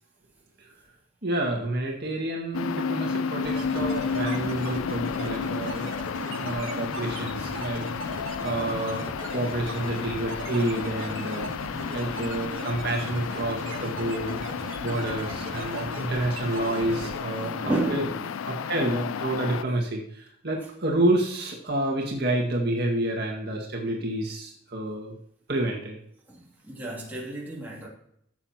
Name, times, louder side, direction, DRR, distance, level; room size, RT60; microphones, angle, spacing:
voice 1, 1.2-5.9 6.4-11.5 11.9-14.4 14.8-18.0 18.4-25.1 25.5-26.0, right 1 dB, 50° right, -1 dB, 1.9 m, -29 dB
sound 1, 2.5-19.6, left 6 dB, 80° left, 0.4 m, -32 dB
sound 2, 3.4-17.2, right 2 dB, 75° right, 2.0 m, -38 dB
voice 2, 17.4-18.3 26.3-27.9, right 2 dB, 10° right, -5 dB, 2.7 m, -31 dB
15.5 x 7.6 x 2.9 m, 0.71 s
head